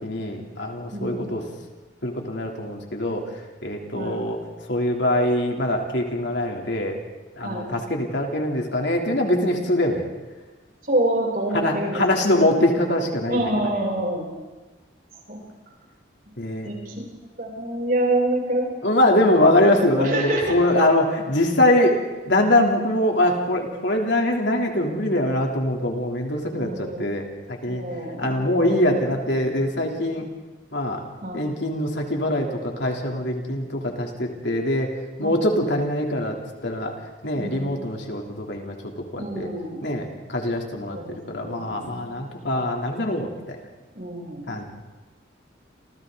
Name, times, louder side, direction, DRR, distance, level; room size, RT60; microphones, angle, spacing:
voice 1, 0.0-1.4 2.0-3.2 3.6-4.4 4.7-7.0 7.4-10.0 11.5-13.4 16.4-16.7 18.8-22.0 22.2-27.8 28.2-30.3 30.7-31.0 31.3-34.9 35.2-36.4 36.6-36.9 37.2-38.7 39.1-39.5 39.8-41.0 41.3-43.6 44.5-44.6, left 1 dB, 65° left, 1 dB, 3.3 m, -23 dB
voice 2, 0.9-1.5 3.9-4.2 7.4-7.7 10.8-12.6 13.3-14.3 15.3-15.4 16.6-17.0 17.4-18.7 20.0-20.6 26.6-27.1 27.7-28.5 31.2-31.4 35.2-35.4 37.3-37.7 39.2-40.0 40.9-42.1 42.4-42.5 43.9-44.6, right 1 dB, 50° right, -2 dB, 7.5 m, -27 dB
29.5 x 27.5 x 4.0 m, 1.2 s
head